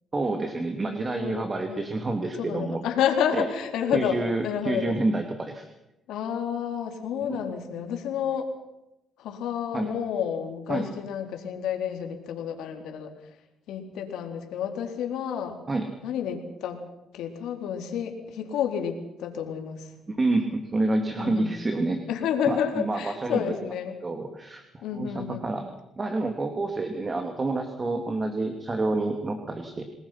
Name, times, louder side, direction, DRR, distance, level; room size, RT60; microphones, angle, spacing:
voice 1, 0.1-2.8 3.3-3.5 3.9-5.7 7.3-7.4 9.7-9.9 10.7-10.9 15.7-15.9 20.1-22.0 22.5-23.5 24.0-25.7 26.0-29.8, right 2 dB, 30° right, 5 dB, 2.8 m, -28 dB
voice 2, 0.8-1.9 2.4-4.2 4.4-5.0 6.1-8.5 9.2-13.1 13.7-15.6 16.0-16.8 17.1-19.9 21.2-21.5 22.1-24.0 24.8-25.5, left 8 dB, 85° left, 4 dB, 3.9 m, -30 dB
29.0 x 20.5 x 5.9 m, 0.88 s
cardioid pair, 90°, 0 cm